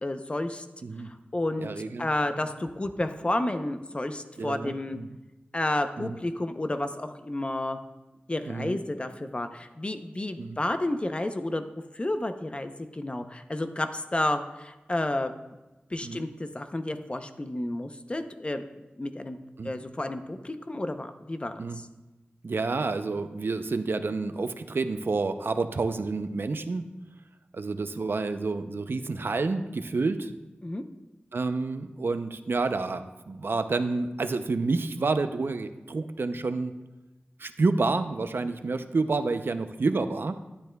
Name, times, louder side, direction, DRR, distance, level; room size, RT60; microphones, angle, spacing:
voice 1, 0.0-0.7 1.0-1.7 2.0-5.0 5.5-7.8 8.3-11.7 11.9-15.3 15.9-18.6 19.0-19.4 19.6-21.8 30.6-30.8, left 1 dB, 30° left, 8 dB, 0.6 m, -31 dB
voice 2, 1.6-2.1 4.4-5.1 6.0-6.2 8.5-8.8 10.4-10.6 16.0-16.2 19.6-19.7 21.6-21.8 22.4-26.8 27.5-30.3 31.3-36.7 37.4-40.3, right 3 dB, 70° right, 9 dB, 0.5 m, -29 dB
12.0 x 10.0 x 2.3 m, 1.1 s
wide cardioid pair, 80°, 4 cm